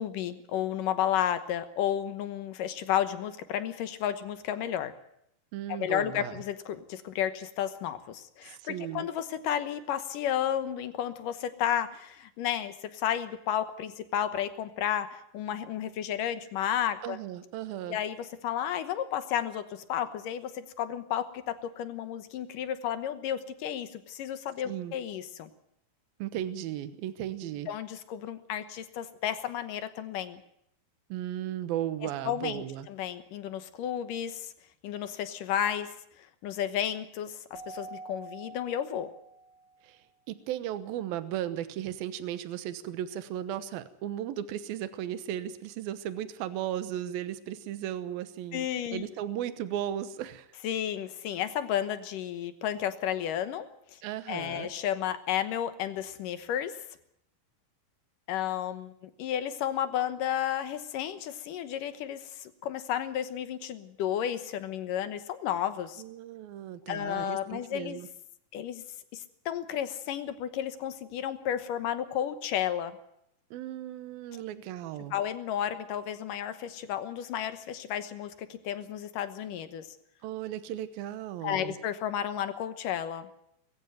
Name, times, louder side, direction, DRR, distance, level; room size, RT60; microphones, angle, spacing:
voice 1, 0.0-4.9 5.7-17.2 17.9-25.5 27.7-30.4 32.0-34.5 34.8-35.9 36.2-39.1 48.5-49.0 50.6-54.0 54.3-56.8 58.3-66.0 66.9-68.0 68.5-68.8 69.1-73.0 74.3-74.4 75.1-79.9 81.4-83.3, left 10 dB, 70° left, 11 dB, 2.6 m, -32 dB
voice 2, 5.5-6.4 8.4-9.1 17.0-18.0 24.7-24.9 26.2-27.7 31.1-32.9 39.8-40.0 40.3-48.7 48.9-50.5 54.0-54.7 66.0-68.1 73.5-75.1 80.2-81.8, right 11 dB, 80° right, 12 dB, 2.9 m, -36 dB
Keyboard (musical), 37.5-39.8, right 3 dB, 15° left, 2.4 m, -46 dB
20.5 x 15.5 x 9.2 m, 0.76 s
omnidirectional pair, 4.2 m